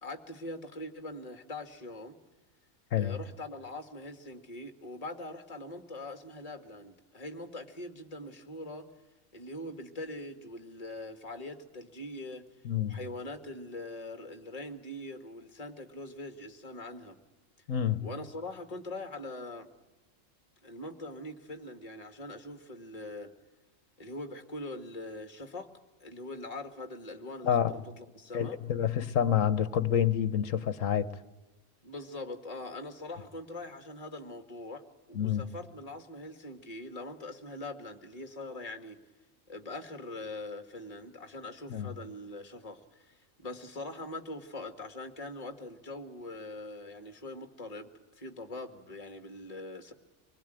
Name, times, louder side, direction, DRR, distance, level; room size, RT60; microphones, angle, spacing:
voice 1, 0.0-2.2 3.0-8.9 9.3-12.4 12.9-17.2 18.0-19.7 20.6-23.3 24.0-25.7 26.0-28.6 31.8-34.8 35.1-39.0 39.5-47.9 48.2-49.9, left 2 dB, 30° left, 2.0 m, -42 dB
voice 2, 12.6-13.0 17.7-18.1 27.4-27.8 28.3-31.1 35.1-35.4 41.7-41.9, left 9 dB, 80° left, 1.5 m, -28 dB
25.0 x 21.0 x 9.1 m
omnidirectional pair, 1.3 m